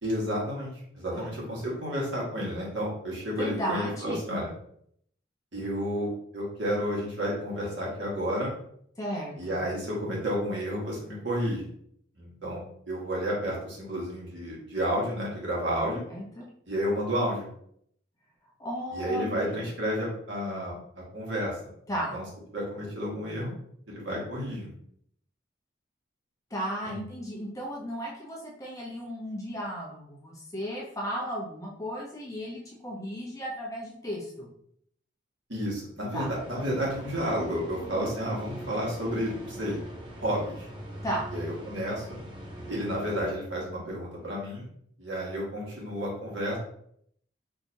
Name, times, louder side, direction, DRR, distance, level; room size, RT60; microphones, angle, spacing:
voice 1, 0.0-4.5 5.5-8.5 9.4-11.6 12.2-16.0 16.7-17.5 18.9-20.7 21.1-21.5 22.1-22.2 22.5-23.5 23.9-24.7 26.8-27.0 35.5-39.8 40.2-40.7 41.3-42.2 42.7-44.7 45.0-46.6, equal, 65° right, -4 dB, 1.6 m, -31 dB
voice 2, 3.4-4.2 9.0-9.6 16.1-16.5 18.6-19.6 21.9-22.2 26.5-34.5 36.1-36.3 41.0-41.3, equal, 15° left, -3 dB, 0.8 m, -35 dB
sound 1, 36.1-43.3, right 1 dB, 25° right, 0.9 m, -42 dB
4.8 x 2.9 x 2.7 m, 0.68 s
head